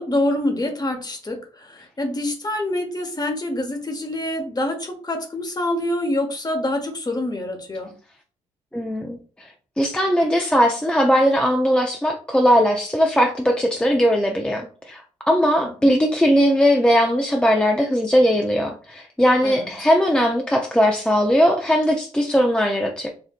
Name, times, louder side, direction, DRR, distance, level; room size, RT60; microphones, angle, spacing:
voice 1, 0.0-7.9 15.6-15.9 19.4-19.7, left 1 dB, 25° left, 5 dB, 1.1 m, -26 dB
voice 2, 8.7-9.5 9.8-23.1, equal, 5° left, 2 dB, 0.6 m, -19 dB
4.2 x 2.5 x 2.4 m, 0.40 s
supercardioid pair, 55°, 15 cm